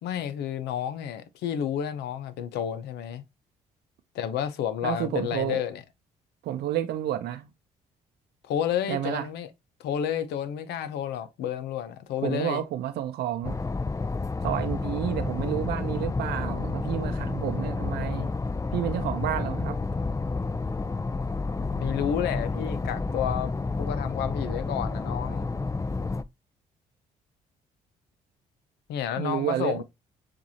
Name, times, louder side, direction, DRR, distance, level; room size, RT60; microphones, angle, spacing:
voice 1, 0.0-3.2 4.1-5.8 8.4-9.5 9.8-12.6 21.7-23.5 23.8-25.5 28.9-29.8, left 9 dB, 75° left, 0.7 m, -30 dB
voice 2, 4.8-5.6 6.4-7.5 8.9-9.2 12.2-13.6 14.4-18.3 18.7-19.7 29.2-29.8, right 11 dB, 70° right, 0.6 m, -30 dB
sound 1, 13.4-26.2, left 3 dB, 20° left, 0.5 m, -30 dB
7.1 x 2.6 x 2.7 m
hypercardioid pair, 50°, 17 cm